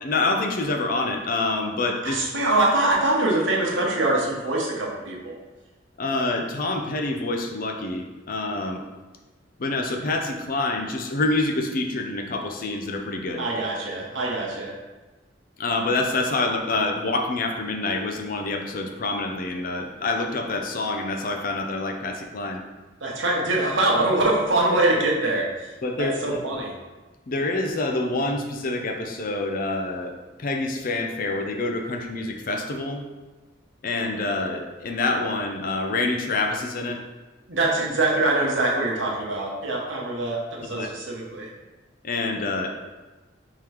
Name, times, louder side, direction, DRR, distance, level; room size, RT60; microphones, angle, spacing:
voice 1, 0.0-2.2 6.0-8.8 9.6-13.5 15.6-22.6 25.8-26.4 27.3-30.1 30.4-33.0 33.8-37.0 40.7-40.9 42.0-42.8, left 2 dB, 50° left, 4 dB, 0.5 m, -27 dB
voice 2, 2.0-5.3 13.4-14.7 23.0-25.5 26.0-26.7 37.5-41.5, right 2 dB, 85° right, -2 dB, 1.0 m, -23 dB
3.7 x 3.0 x 4.8 m, 1.2 s
head